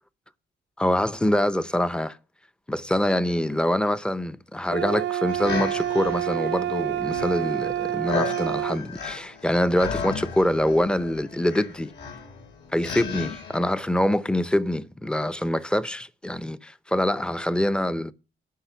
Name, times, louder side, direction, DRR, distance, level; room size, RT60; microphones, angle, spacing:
voice 1, 0.8-2.2 2.7-11.9 12.7-18.1, left 1 dB, 5° left, 0.6 m, -25 dB
sound 1, 4.7-8.8, right 12 dB, 65° right, 0.4 m, -28 dB
sound 2, 5.3-13.6, left 6 dB, 60° left, 2.3 m, -35 dB
10.0 x 5.7 x 6.9 m
cardioid pair, 90°, 20 cm